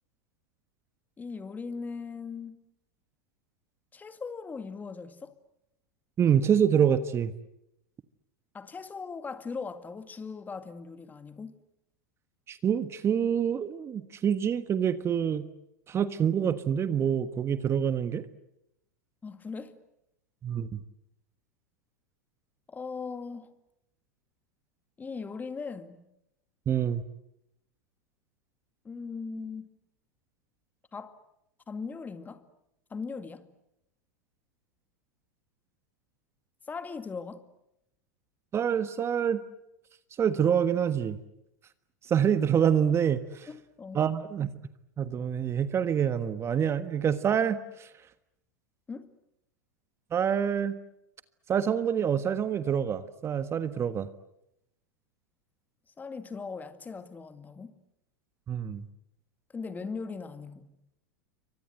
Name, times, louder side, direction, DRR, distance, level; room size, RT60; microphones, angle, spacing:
voice 1, 1.2-2.6 3.9-5.3 8.5-11.5 19.2-19.8 22.7-23.5 25.0-26.1 28.8-29.8 30.9-31.2 31.7-32.4 32.9-33.5 36.7-37.5 43.5-44.0 48.9-49.1 56.0-57.8 59.5-60.7, left 5 dB, 20° left, 2.2 m, -39 dB
voice 2, 6.2-7.3 12.5-15.5 15.9-18.2 20.4-20.8 26.7-27.0 38.5-39.4 40.2-41.2 42.1-43.5 43.9-44.5 45.0-47.9 50.1-50.8 51.5-54.1 58.5-58.9, right 8 dB, 30° right, 1.4 m, -26 dB
28.5 x 24.5 x 8.0 m
hypercardioid pair, 95°, 9 cm